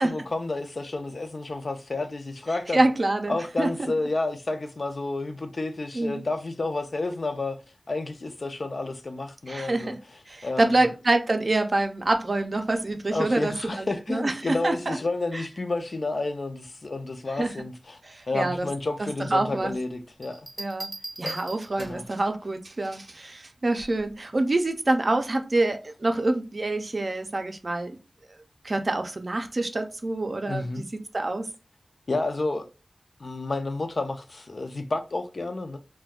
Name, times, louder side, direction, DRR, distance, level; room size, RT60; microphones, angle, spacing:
voice 1, 0.0-2.8 3.3-7.6 7.9-10.0 10.4-10.9 13.1-18.0 18.3-20.5 21.2-21.3 21.8-22.0 30.5-30.8 32.1-32.7 33.2-35.8, left 2 dB, 60° left, 0.4 m, -30 dB
voice 2, 2.7-3.9 5.9-6.2 9.5-10.0 10.3-15.0 15.3-15.4 17.3-17.5 18.0-18.7 19.0-19.7 20.6-20.9 21.2-28.0 28.6-31.5, right 2 dB, 55° right, 0.4 m, -26 dB
Bell, 20.2-22.2 23.8-24.1, right 2 dB, 30° right, 0.8 m, -39 dB
2.3 x 2.2 x 3.4 m
wide cardioid pair, 75°, 0 cm